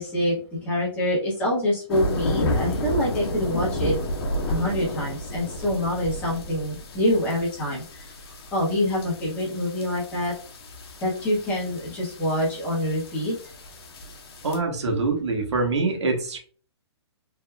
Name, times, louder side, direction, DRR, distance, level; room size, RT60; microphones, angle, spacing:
voice 1, 0.0-3.9 4.5-8.1 8.5-10.3 11.0-13.4, left 1 dB, 10° left, -5 dB, 1.2 m, -26 dB
sound 1, 1.9-14.6, left 1 dB, 60° left, 1.1 m, -32 dB
voice 2, 14.4-16.4, right 3 dB, 85° right, 2 dB, 1.4 m, -24 dB
4.0 x 3.5 x 2.3 m, 0.41 s
hypercardioid pair, 170°, 14 cm